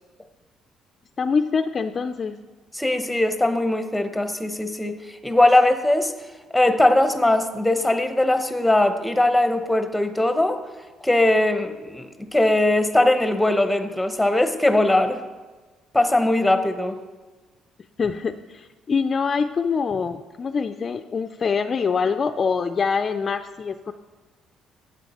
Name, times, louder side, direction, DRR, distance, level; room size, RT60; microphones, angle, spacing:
voice 1, 1.2-2.4 18.0-23.9, left 5 dB, 35° left, 9 dB, 0.4 m, -24 dB
voice 2, 2.7-6.1 6.5-10.6 11.0-15.2 15.9-17.0, left 1 dB, 5° left, 9 dB, 0.7 m, -20 dB
11.5 x 8.2 x 4.2 m, 1.3 s
cardioid pair, 110°, 0 cm